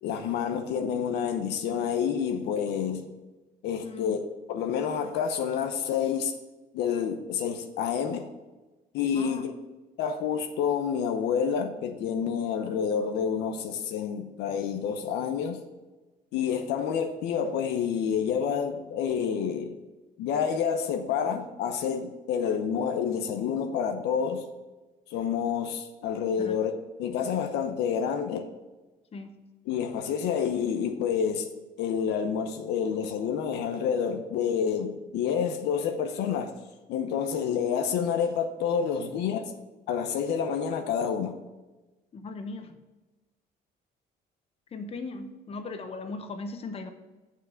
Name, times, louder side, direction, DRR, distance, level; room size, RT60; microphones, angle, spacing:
voice 1, 0.0-3.1 3.6-4.2 4.5-6.3 6.7-8.3 8.9-9.5 10.0-15.6 16.3-19.8 20.2-24.5 25.1-26.7 27.0-28.5 29.7-31.5 31.8-36.5 36.9-39.4 39.9-41.4, left 7 dB, 85° left, 7 dB, 0.8 m, -28 dB
voice 2, 3.8-4.2 9.1-9.5 26.4-26.6 29.1-29.4 39.0-39.1 42.1-42.8 44.7-46.9, left 3 dB, 35° left, 7 dB, 0.9 m, -38 dB
7.4 x 5.8 x 5.8 m, 1.2 s
cardioid pair, 110°, 17 cm